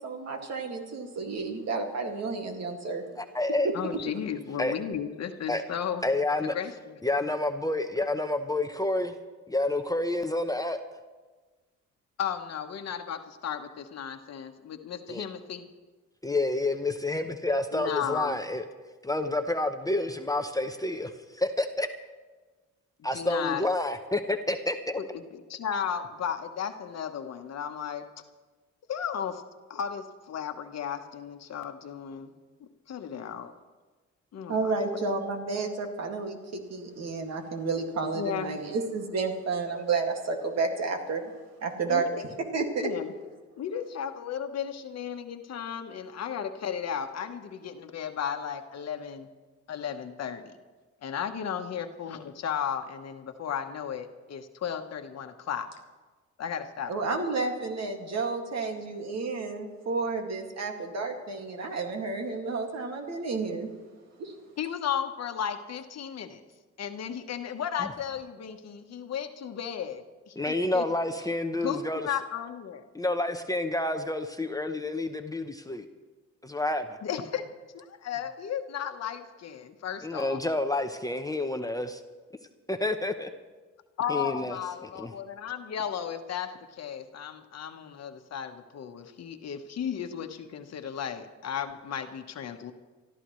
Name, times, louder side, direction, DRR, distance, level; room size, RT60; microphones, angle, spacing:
voice 1, 0.0-3.0 34.5-41.2 41.6-42.1 42.5-42.9 56.9-63.7 64.2-64.3, right 4 dB, 60° right, 3 dB, 2.2 m, -31 dB
voice 2, 3.2-3.7 4.6-4.7 5.5-5.6 6.0-6.5 7.0-9.1 9.5-10.8 15.1-15.2 16.2-18.6 19.0-21.9 23.0-25.0 67.8-67.9 70.4-72.1 73.0-75.9 76.4-77.0 80.0-82.0 82.7-83.3 84.1-85.1, left 2 dB, 10° left, 6 dB, 0.8 m, -29 dB
voice 3, 3.7-6.0 6.4-6.9 12.2-15.6 17.7-18.4 23.0-23.6 25.0-28.0 28.9-29.4 29.7-32.3 32.6-33.5 34.3-34.6 38.1-38.6 41.9-42.1 42.8-43.1 43.6-49.3 49.7-50.5 51.0-55.7 56.4-57.1 64.6-66.4 66.8-70.9 71.6-72.8 77.0-77.4 77.7-80.4 84.0-92.7, left 8 dB, 55° left, 7 dB, 1.2 m, -34 dB
24.5 x 14.0 x 3.2 m, 1.3 s
cardioid pair, 90°, 30 cm